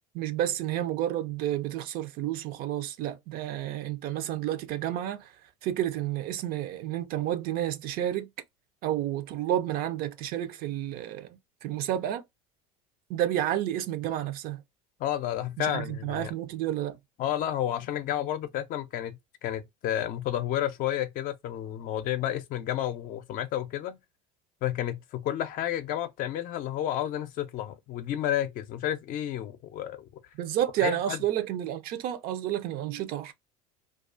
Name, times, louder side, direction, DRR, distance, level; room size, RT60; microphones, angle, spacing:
voice 1, 0.1-5.3 5.6-8.3 8.8-12.2 13.1-14.6 15.6-17.0 30.4-33.3, right 12 dB, 55° right, 0.5 m, -30 dB
voice 2, 15.0-16.3 17.2-24.0 24.6-30.0 30.8-31.2, left 11 dB, 50° left, 0.5 m, -31 dB
2.3 x 2.3 x 2.4 m
supercardioid pair, 95°, 18 cm